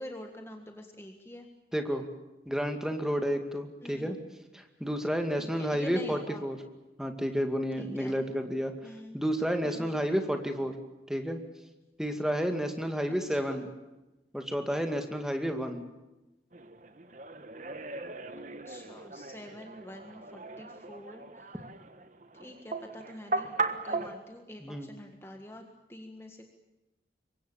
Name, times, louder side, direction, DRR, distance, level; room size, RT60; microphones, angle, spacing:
voice 1, 0.0-1.5 3.8-4.1 5.4-6.4 7.8-8.2 8.8-9.2 9.6-10.0 13.3-13.7 18.6-21.5 22.4-23.5 23.8-25.6 25.9-26.5, left 1 dB, 15° left, 4 dB, 1.7 m, -46 dB
voice 2, 1.7-2.1 2.5-4.2 4.5-6.6 7.0-8.7 9.1-10.7 11.1-11.4 12.0-13.7 14.3-15.9 24.6-24.9, equal, 5° right, 5 dB, 2.2 m, -31 dB
sound 1, 16.5-24.2, right 3 dB, 45° right, 1.5 m, -38 dB
27.0 x 23.5 x 7.1 m, 1.0 s
head